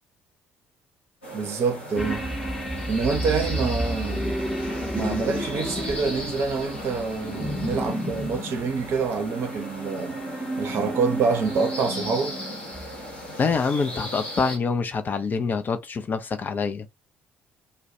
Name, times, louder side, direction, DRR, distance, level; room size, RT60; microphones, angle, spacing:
sound 1, 1.2-14.6, equal, 80° left, 0.9 m, -38 dB
voice 1, 1.3-2.3 2.9-4.4 4.9-10.2 10.6-12.4, right 5 dB, 45° right, 0.6 m, -26 dB
sound 2, 1.9-13.7 14.1-14.2, equal, 5° left, 0.8 m, -32 dB
sound 3, 3.3-8.2, left 2 dB, 60° left, 1.1 m, -41 dB
voice 2, 13.4-16.9, left 5 dB, 30° left, 0.4 m, -25 dB
2.3 x 2.1 x 2.6 m
figure-of-eight pair, 50°, 6 cm